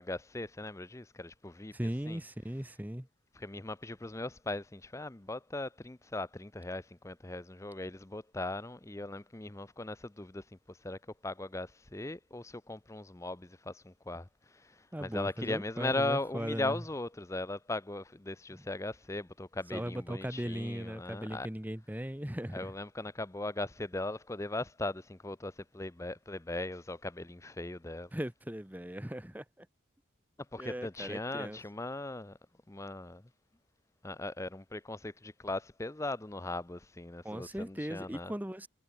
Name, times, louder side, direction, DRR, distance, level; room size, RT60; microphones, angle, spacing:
voice 1, 0.0-1.7 2.1-2.2 3.3-21.5 22.5-28.1 30.5-32.4 32.7-33.3 34.0-38.3, left 2 dB, 15° left, 0.6 m, -39 dB
voice 2, 1.7-3.1 14.9-16.8 18.5-18.6 19.7-22.7 28.1-29.7 30.6-31.6 37.2-38.7, equal, 10° right, 1.0 m, -38 dB
head